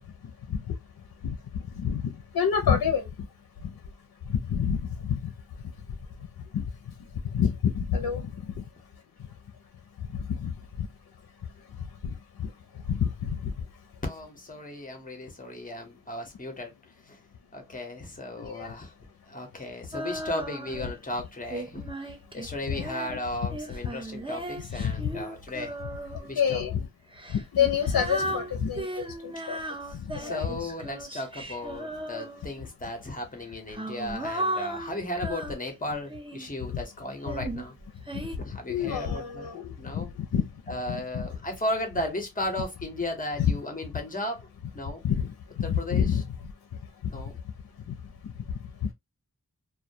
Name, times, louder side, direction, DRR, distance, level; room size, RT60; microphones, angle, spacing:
voice 1, 1.8-3.1 3.6-3.7 4.3-5.2 6.5-6.6 7.3-8.3 10.3-10.5 12.0-12.1 12.4-12.5 12.9-13.5 18.4-18.7 24.8-25.1 26.4-26.8 27.3-29.6 29.9-30.5 38.7-40.1 40.3-40.4 40.9-41.0 45.0-45.3 45.7-46.2 48.8-48.9, left 7 dB, 65° left, 0.5 m, -27 dB
voice 2, 14.0-16.7 17.1-17.2 17.5-18.9 19.3-25.7 26.2-26.6 28.2-28.4 29.9-37.7 38.3-40.1 40.7-44.5 44.7-45.0 45.6-46.2 47.1-47.4, left 1 dB, 20° left, 0.8 m, -35 dB
Female singing, 19.9-21.0 21.5-26.3 27.1-32.7 33.4-36.6 37.2-38.4, right 1 dB, 15° right, 0.5 m, -36 dB
2.2 x 2.1 x 2.6 m
wide cardioid pair, 75°, 37 cm